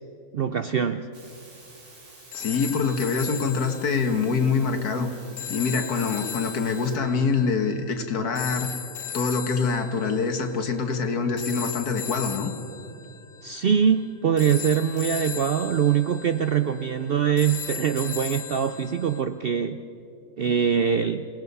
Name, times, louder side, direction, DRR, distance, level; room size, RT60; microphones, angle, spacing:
voice 1, 0.3-1.1 13.4-19.8 20.4-21.3, right 7 dB, 65° right, 10 dB, 0.5 m, -23 dB
sound 1, 1.1-7.0, right 2 dB, 85° right, 3.2 m, -49 dB
voice 2, 2.3-5.1 5.5-8.7 9.1-12.5, left 5 dB, 90° left, 5 dB, 2.0 m, -25 dB
sound 2, 2.3-19.2, left 8 dB, 60° left, 1.5 m, -37 dB
26.5 x 18.0 x 5.5 m, 2.7 s
omnidirectional pair, 1.6 m